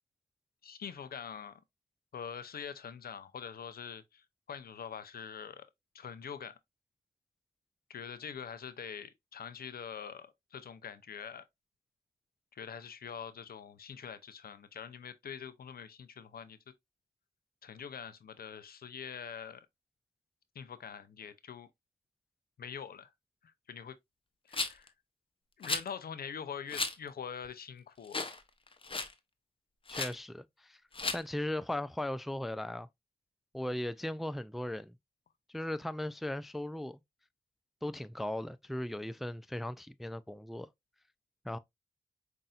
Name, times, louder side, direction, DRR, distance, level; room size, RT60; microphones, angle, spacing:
voice 1, 0.6-1.6 2.1-5.6 5.9-6.6 7.9-11.4 12.5-16.6 17.6-19.6 20.5-21.7 22.6-23.1 23.4-24.0 24.5-24.9 25.6-28.3, left 7 dB, 70° left, 0.6 m, -44 dB
Rattle, 24.5-24.9 25.6-25.9 26.7-26.9 27.4-27.5 28.1-28.4 28.7-29.1 29.9-30.1 30.9-31.2, left 3 dB, 35° left, 0.8 m, -34 dB
voice 2, 29.9-30.8 31.1-32.9 33.5-35.0 35.5-37.0 37.8-40.7 41.4-41.6, left 1 dB, ahead, 0.3 m, -37 dB
5.4 x 2.7 x 2.4 m
cardioid pair, 45°, 16 cm